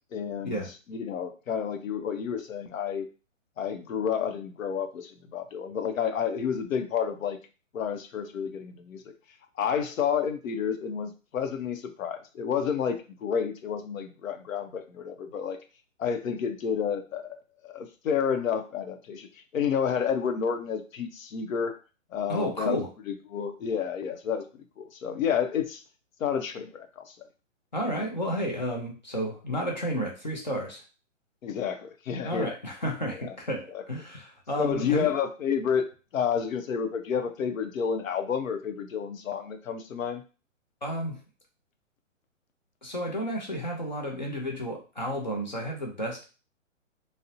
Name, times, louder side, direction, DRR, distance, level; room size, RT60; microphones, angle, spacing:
voice 1, 0.1-0.6 0.9-3.1 3.6-7.4 7.7-9.0 9.6-15.6 16.0-17.3 17.6-19.3 19.5-21.8 22.1-24.4 24.8-25.8 26.2-27.3 31.4-32.5 33.2-33.3 33.7-33.8 34.6-40.2, left 7 dB, 85° left, 7 dB, 0.6 m, -30 dB
voice 2, 22.3-22.9 27.7-30.8 32.2-35.1 40.8-41.2 42.8-46.3, equal, 35° left, 0 dB, 0.4 m, -32 dB
2.5 x 2.0 x 2.6 m, 0.33 s
hypercardioid pair, 170°, 39 cm